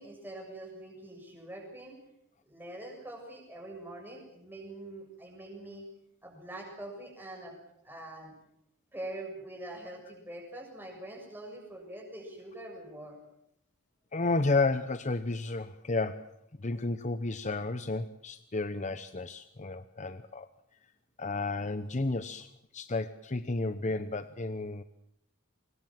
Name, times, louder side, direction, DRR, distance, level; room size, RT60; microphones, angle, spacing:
voice 1, 0.0-2.0 2.4-5.8 6.2-7.6 7.8-8.3 8.9-13.2, right 1 dB, 10° right, 1 dB, 7.4 m, -44 dB
voice 2, 14.1-16.3 16.6-20.5 21.2-22.5 22.7-24.8, left 3 dB, 35° left, 11 dB, 0.8 m, -32 dB
25.0 x 21.0 x 7.6 m, 0.77 s
head